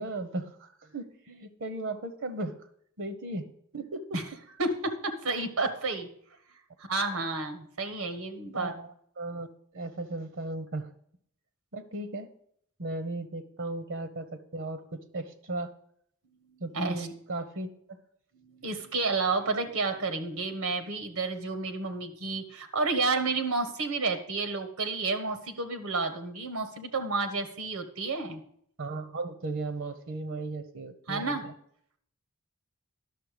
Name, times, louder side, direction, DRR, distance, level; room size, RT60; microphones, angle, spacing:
voice 1, 0.0-2.6 3.0-3.5 3.7-4.0 8.6-9.5 9.7-10.9 11.7-12.3 12.8-15.7 16.6-18.0 28.8-31.5, right 2 dB, 65° right, 11 dB, 0.9 m, -36 dB
voice 2, 4.6-6.1 6.9-8.7 16.7-17.1 18.4-28.4 31.1-31.5, right 3 dB, 85° right, 8 dB, 1.3 m, -30 dB
11.0 x 6.7 x 5.0 m, 0.66 s
head